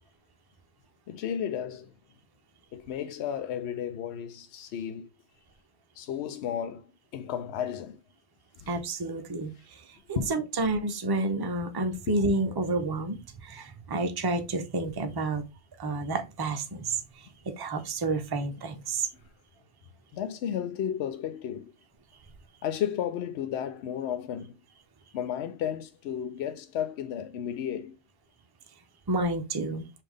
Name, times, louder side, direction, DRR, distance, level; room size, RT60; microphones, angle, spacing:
voice 1, 1.1-1.9 2.7-5.1 6.0-8.0 8.6-8.7 10.2-10.3 12.1-12.2 20.1-21.7 22.6-24.6 25.1-28.0, left 9 dB, 75° left, 0.8 m, -33 dB
voice 2, 8.7-9.8 10.1-15.5 15.8-17.0 17.4-19.1 29.1-29.8, right 2 dB, 30° right, 0.5 m, -30 dB
5.3 x 2.8 x 3.5 m
omnidirectional pair, 1.1 m